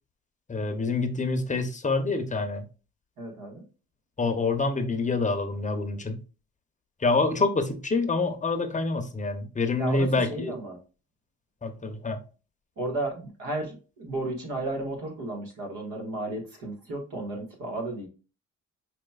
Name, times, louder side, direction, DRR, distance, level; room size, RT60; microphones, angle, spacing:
voice 1, 0.5-2.6 4.2-6.2 7.0-10.5 11.6-12.2, left 3 dB, 25° left, 0.7 m, -26 dB
voice 2, 3.2-3.6 9.8-10.8 12.8-18.1, right 2 dB, 85° right, 1.5 m, -33 dB
5.0 x 3.0 x 2.3 m
cardioid pair, 90°, 30 cm